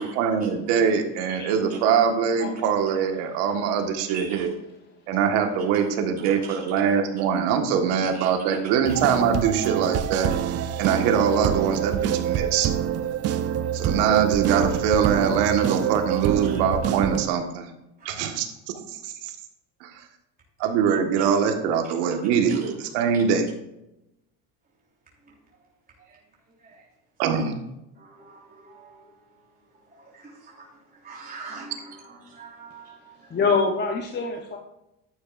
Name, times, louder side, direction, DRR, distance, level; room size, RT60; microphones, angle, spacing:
voice 1, 0.0-4.5 5.1-10.3 10.8-12.7 13.7-17.7 18.0-18.5 18.9-19.3 19.8-20.0 20.6-23.5 27.2-27.5, right 7 dB, 80° right, 5 dB, 1.7 m, -23 dB
voice 2, 4.1-4.5 5.6-5.9 6.2-6.8 8.0-8.6 8.8-8.9 9.6-9.7 12.0-12.1 16.4-16.6 18.0-18.2 21.2-21.3 22.5-22.7 26.1-26.2 26.6-26.8 27.9-29.1 29.9-33.4, right 4 dB, 20° right, -4 dB, 3.3 m, -43 dB
sound 1, 8.8-17.3, right 10 dB, 40° right, 0.5 m, -26 dB
voice 3, 33.3-34.6, left 4 dB, 25° left, 2 dB, 1.0 m, -25 dB
11.5 x 9.2 x 2.6 m, 0.87 s
cardioid pair, 120°, 40 cm